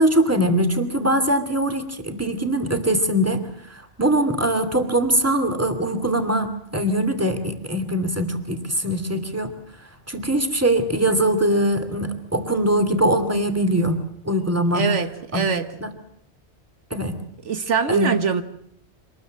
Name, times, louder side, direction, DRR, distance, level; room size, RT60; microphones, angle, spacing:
voice 1, 0.0-9.5 10.1-14.8 15.3-15.5 15.8-15.9 16.9-17.2 17.9-18.1, right 1 dB, 10° right, 7 dB, 2.6 m, -22 dB
voice 2, 14.7-15.7 17.4-18.4, right 6 dB, 80° right, 10 dB, 1.5 m, -23 dB
25.5 x 20.5 x 7.6 m, 0.69 s
omnidirectional pair, 1.2 m